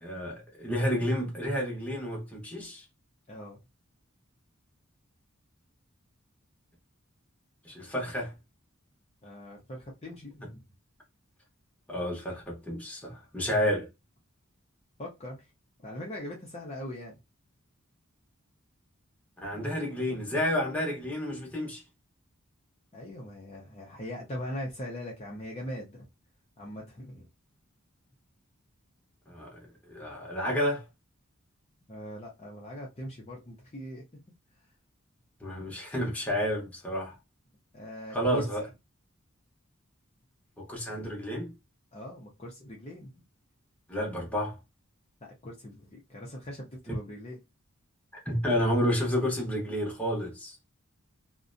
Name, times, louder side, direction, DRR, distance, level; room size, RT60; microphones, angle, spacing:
voice 1, 0.0-2.8 7.6-8.3 11.9-13.9 19.4-21.8 29.3-30.8 35.4-37.2 38.1-38.6 40.6-41.5 43.9-44.6 48.2-50.6, equal, 5° left, 0.9 m, -30 dB
voice 2, 3.3-3.6 9.2-10.6 15.0-15.5 15.8-17.2 22.9-26.1 26.6-27.3 31.9-34.2 37.7-38.5 41.9-43.2 45.2-47.4, equal, 30° left, 0.6 m, -41 dB
2.6 x 2.1 x 2.5 m
head